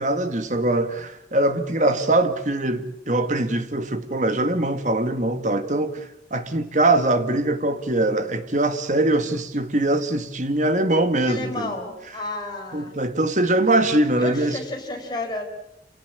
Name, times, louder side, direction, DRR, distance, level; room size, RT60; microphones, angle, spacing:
voice 1, 0.0-11.7 12.7-14.6, right 2 dB, 45° right, 1.9 m, -22 dB
voice 2, 11.1-12.9 14.2-15.4, left 2 dB, 25° left, 4.9 m, -31 dB
27.5 x 18.0 x 8.5 m
head